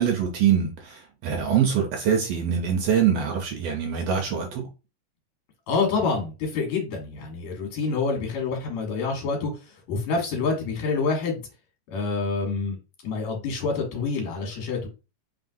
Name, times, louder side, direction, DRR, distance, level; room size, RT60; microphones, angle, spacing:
voice 1, 0.0-4.6, right 8 dB, 75° right, 1.5 m, -24 dB
voice 2, 5.7-11.4 11.9-12.8 13.0-14.9, left 4 dB, 70° left, 2.5 m, -27 dB
4.0 x 3.8 x 2.6 m
omnidirectional pair, 3.3 m